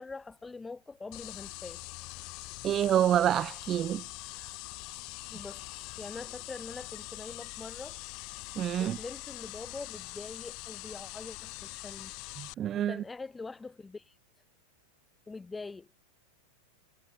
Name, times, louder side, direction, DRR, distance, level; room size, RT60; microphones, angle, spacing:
voice 1, 0.0-1.8 5.3-8.0 8.8-12.1 12.8-14.2 15.3-15.9, left 3 dB, 10° left, 1.9 m, -44 dB
sound 1, 1.1-12.5, left 27 dB, 40° left, 1.4 m, -43 dB
voice 2, 2.6-4.0 8.6-9.0 12.4-13.0, right 11 dB, 30° right, 0.7 m, -27 dB
figure-of-eight pair, 90°, 0 cm